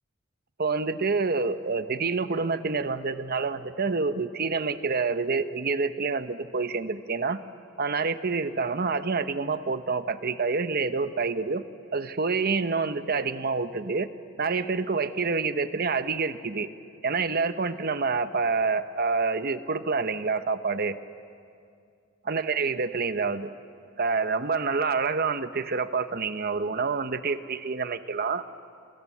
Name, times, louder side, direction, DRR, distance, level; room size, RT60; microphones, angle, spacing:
voice 1, 0.6-7.4 7.8-11.6 11.9-14.1 14.4-16.7 17.0-21.0 22.3-23.5 24.0-28.4, right 4 dB, 50° right, 11 dB, 0.9 m, -27 dB
28.0 x 25.0 x 7.4 m, 2.4 s
head